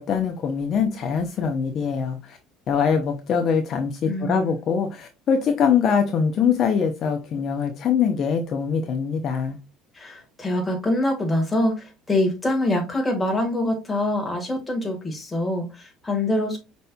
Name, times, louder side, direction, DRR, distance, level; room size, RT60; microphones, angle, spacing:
voice 1, 0.0-2.4 2.7-9.6, left 6 dB, 40° left, 0.7 m, -23 dB
voice 2, 4.0-4.5 9.9-16.6, left 1 dB, 10° left, 1.5 m, -25 dB
5.3 x 4.2 x 2.2 m
cardioid pair, 150°, 0 cm